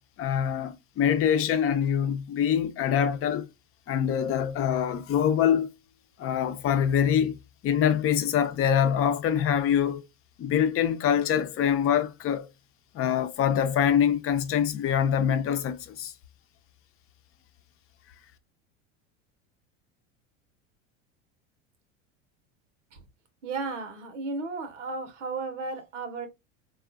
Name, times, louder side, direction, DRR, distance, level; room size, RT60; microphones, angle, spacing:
voice 1, 0.2-3.5 3.9-5.7 6.2-7.4 7.6-10.0 10.4-12.5 12.9-16.1, left 9 dB, 40° left, 0.7 m, -24 dB
voice 2, 23.4-26.3, right 3 dB, 85° right, 1.0 m, -34 dB
3.7 x 2.4 x 2.3 m
hypercardioid pair, 90°, 36 cm